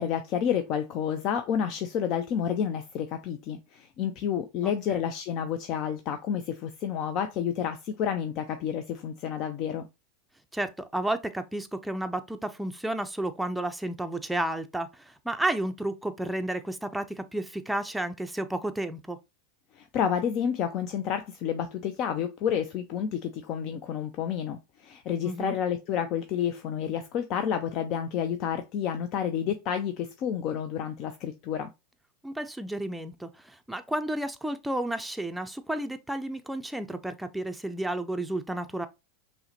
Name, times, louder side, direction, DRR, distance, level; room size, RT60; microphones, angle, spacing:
voice 1, 0.0-9.9 19.7-31.7, left 8 dB, 50° left, 0.4 m, -30 dB
voice 2, 4.6-5.1 10.5-19.2 25.2-25.6 32.2-38.9, right 1 dB, 5° right, 0.5 m, -32 dB
5.5 x 2.1 x 2.8 m
hypercardioid pair, 95°, 0 cm